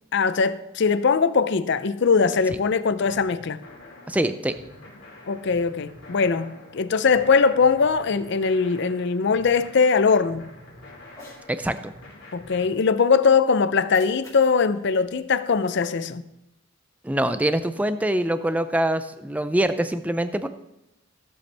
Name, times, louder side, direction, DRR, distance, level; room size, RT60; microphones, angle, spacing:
voice 1, 0.1-3.6 5.3-10.5 12.3-16.2, left 5 dB, 60° left, 0.5 m, -21 dB
sound 1, 3.0-12.7, left 1 dB, 85° left, 2.3 m, -47 dB
voice 2, 4.1-4.6 11.5-11.9 17.0-20.5, right 1 dB, 5° right, 0.4 m, -24 dB
Cat, 11.0-11.5 13.7-16.0, left 2 dB, 15° left, 2.5 m, -50 dB
14.5 x 7.9 x 3.4 m
head